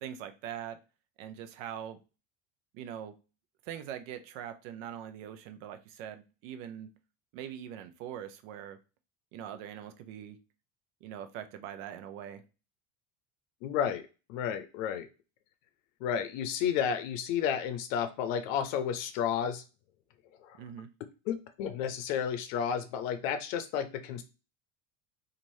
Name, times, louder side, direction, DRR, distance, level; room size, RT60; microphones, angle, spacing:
voice 1, 0.0-0.8 1.2-2.0 2.7-3.2 3.7-6.9 7.3-8.8 9.3-10.4 11.0-12.4 20.6-20.9, right 9 dB, 80° right, 9 dB, 0.6 m, -42 dB
voice 2, 13.6-15.1 16.0-19.6 20.4-20.6 21.3-24.2, left 8 dB, 85° left, 9 dB, 0.6 m, -32 dB
2.6 x 2.5 x 3.1 m, 0.31 s
supercardioid pair, 125°, 38 cm